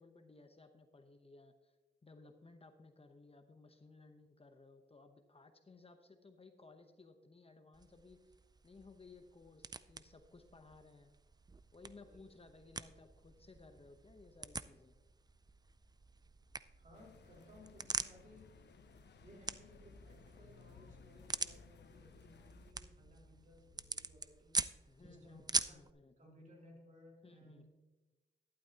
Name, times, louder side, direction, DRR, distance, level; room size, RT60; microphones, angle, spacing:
voice 1, 0.0-1.8 2.0-8.4 8.6-11.1 11.7-14.9 24.8-26.1 27.2-27.7, left 3 dB, 30° left, 7 dB, 0.9 m, -59 dB
sound 1, 7.7-25.9, right 4 dB, 20° right, 0.4 m, -45 dB
sound 2, 11.4-24.1, equal, 10° left, 3.7 m, -67 dB
voice 2, 16.8-18.5 19.2-27.7, left 1 dB, 45° right, -2 dB, 3.9 m, -61 dB
sound 3, 16.9-22.7, left 7 dB, 70° left, 0.5 m, -61 dB
12.5 x 11.5 x 2.9 m, 1.2 s
cardioid pair, 80°, 19 cm